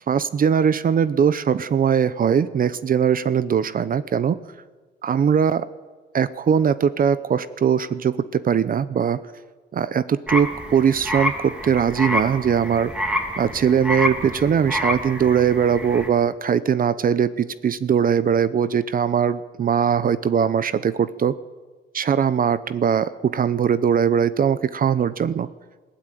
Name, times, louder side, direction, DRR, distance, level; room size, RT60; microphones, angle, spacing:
voice 1, 0.1-4.4 5.0-5.7 6.1-9.2 9.7-12.9 13.4-21.4 21.9-25.5, right 7 dB, 45° right, 15 dB, 0.8 m, -20 dB
sound 1, 10.3-16.1, left 1 dB, 5° right, 3.2 m, -28 dB
20.5 x 15.5 x 9.1 m, 1.4 s
cardioid pair, 90°, 20 cm